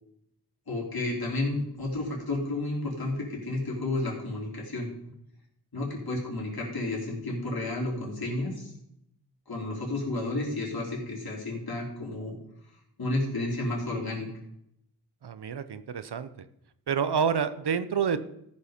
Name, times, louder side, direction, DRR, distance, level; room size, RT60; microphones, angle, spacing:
voice 1, 0.7-4.9 5.7-8.7 9.5-12.3 13.0-14.3, left 2 dB, 60° left, -3 dB, 3.3 m, -31 dB
voice 2, 15.2-16.3 16.9-18.2, right 7 dB, 70° right, 12 dB, 0.7 m, -28 dB
14.0 x 5.6 x 5.0 m, 0.78 s
wide cardioid pair, 65°, 41 cm